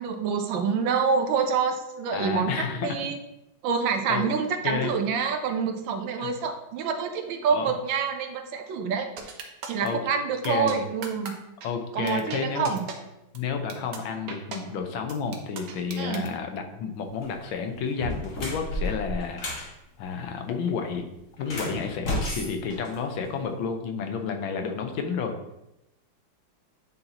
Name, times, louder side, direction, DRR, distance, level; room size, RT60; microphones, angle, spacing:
voice 1, 0.0-3.2 3.6-9.3 9.7-11.3 11.9-12.8 16.0-16.3, right 6 dB, 80° right, 6 dB, 1.5 m, -27 dB
voice 2, 2.1-2.9 4.1-4.3 4.6-4.9 6.2-6.3 7.5-7.7 9.8-10.0 10.4-10.8 11.6-12.7 13.3-21.0 21.4-25.4, left 5 dB, 90° left, 5 dB, 1.6 m, -31 dB
sound 1, 9.2-9.9 10.4-10.7 11.0-11.3 11.6-11.7 12.1-12.4 12.6-13.0 13.3-13.4 13.7-14.0 14.3-14.6 15.1-16.3, right 5 dB, 60° right, 1.1 m, -37 dB
sound 2, 17.1-17.4 17.9-19.7 21.4-23.4, left 1 dB, 45° left, 1.6 m, -32 dB
9.3 x 4.0 x 2.9 m, 0.89 s
omnidirectional pair, 2.1 m